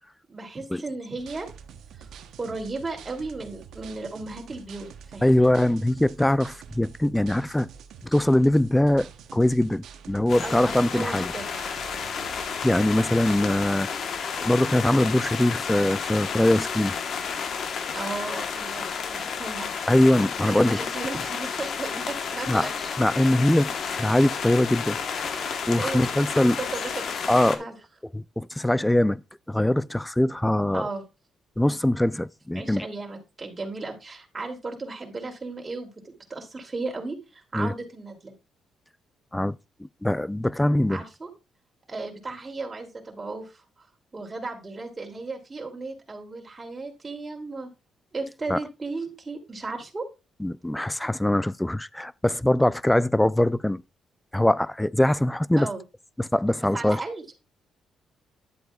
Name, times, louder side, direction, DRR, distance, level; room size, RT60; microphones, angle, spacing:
voice 1, 0.3-1.5 2.0-2.1 2.4-5.3 10.4-11.5 17.9-19.7 20.5-22.8 25.4-27.7 30.7-31.0 32.5-38.3 40.9-41.3 41.9-43.6 44.1-47.7 48.1-50.0 55.6-55.8 56.7-57.3, right 3 dB, 25° right, 2.7 m, -35 dB
sound 1, 1.2-13.7, right 7 dB, 80° right, 0.9 m, -46 dB
voice 2, 5.2-7.7 8.0-11.3 12.6-13.9 14.4-16.9 19.9-20.8 22.5-22.7 23.0-26.6 27.3-27.6 28.1-29.2 29.5-30.9 31.6-32.9 37.5-37.7 39.3-41.0 48.5-48.6 50.4-53.8 54.3-55.7 56.2-57.0, left 1 dB, 5° left, 0.3 m, -22 dB
sound 2, 10.3-27.6, left 6 dB, 60° left, 1.1 m, -31 dB
11.0 x 7.7 x 2.3 m
cardioid pair, 90°, 0 cm